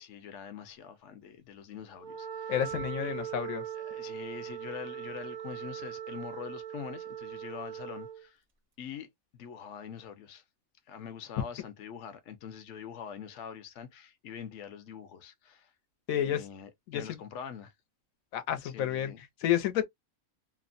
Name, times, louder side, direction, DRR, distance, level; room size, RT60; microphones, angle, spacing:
voice 1, 0.0-2.5 3.0-3.4 3.7-8.4 8.8-9.1 9.3-10.4 10.9-15.7 16.1-17.7 18.6-19.2, left 8 dB, 65° left, 0.9 m, -44 dB
Wind instrument woodwind instrument, 1.9-8.2, right 10 dB, 50° right, 0.6 m, -40 dB
voice 2, 2.5-3.6 16.1-16.4 16.9-17.2 18.3-19.9, left 10 dB, 90° left, 1.1 m, -30 dB
2.9 x 2.1 x 2.4 m
omnidirectional pair, 1.4 m